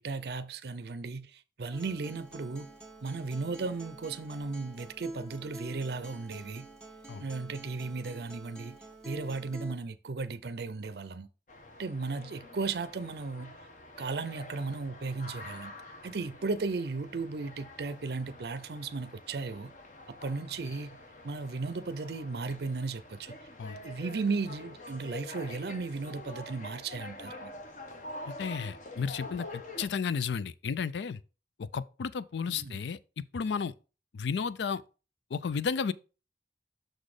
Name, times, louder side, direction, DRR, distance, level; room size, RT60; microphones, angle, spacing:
voice 1, 0.0-2.7 3.0-6.7 7.2-8.8 9.0-11.3 11.8-13.5 14.0-15.7 16.0-19.7 20.2-21.0 21.2-23.4 23.8-27.5 32.5-32.8, right 4 dB, 60° right, 0.5 m, -35 dB
Acoustic guitar, 1.7-9.7, right 2 dB, 5° left, 1.6 m, -48 dB
sound 1, 11.5-29.9, left 1 dB, 45° left, 1.0 m, -47 dB
voice 2, 28.3-31.2 31.6-33.0 33.3-33.7 34.1-34.8 35.3-35.9, left 6 dB, 75° left, 0.4 m, -33 dB
6.3 x 4.1 x 4.8 m
head